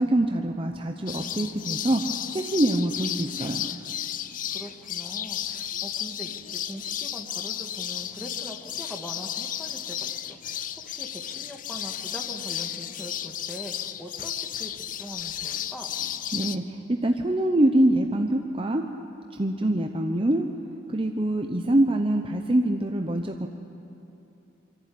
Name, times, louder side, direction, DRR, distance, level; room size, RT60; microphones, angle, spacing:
voice 1, 0.0-2.0 2.3-3.7 16.3-18.8 19.3-20.5 20.9-23.5, right 1 dB, 30° right, 4 dB, 0.8 m, -24 dB
sound 1, 1.1-16.6, left 10 dB, 45° left, 0.5 m, -33 dB
voice 2, 4.5-15.9, equal, ahead, 2 dB, 1.7 m, -42 dB
24.0 x 14.5 x 8.5 m, 3.0 s
head